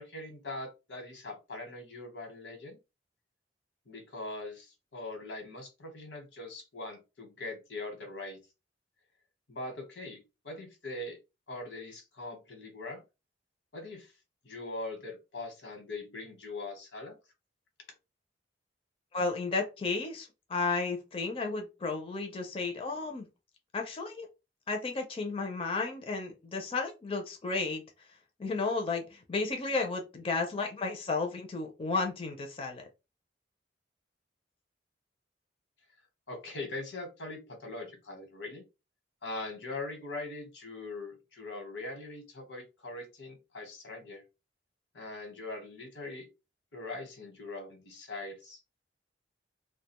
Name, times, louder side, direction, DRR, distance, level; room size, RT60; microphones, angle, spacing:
voice 1, 0.0-2.8 3.9-8.4 9.5-10.2 10.4-11.2 11.5-13.0 13.7-14.1 14.4-17.2 36.3-38.6 39.2-44.2 44.9-46.3 46.7-48.6, left 2 dB, 85° left, 4 dB, 1.0 m, -41 dB
voice 2, 19.1-23.3 23.7-24.3 24.7-28.1 28.4-32.8, left 3 dB, 30° left, 3 dB, 0.4 m, -33 dB
2.3 x 2.2 x 2.9 m, 0.27 s
head